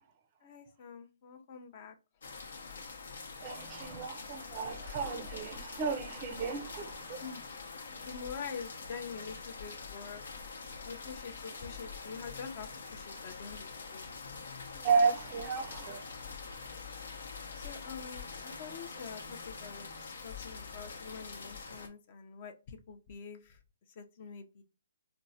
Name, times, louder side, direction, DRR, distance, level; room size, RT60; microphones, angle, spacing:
voice 1, 0.4-2.0 7.2-10.2 10.9-14.1 17.5-23.6 24.0-24.6, left 6 dB, 35° left, 0.6 m, -46 dB
sound 1, 2.2-21.9, left 4 dB, 80° left, 0.8 m, -45 dB
voice 2, 3.4-7.2 14.7-16.1, right 5 dB, 25° right, 0.5 m, -33 dB
4.4 x 2.0 x 2.6 m
hypercardioid pair, 160°, 0 cm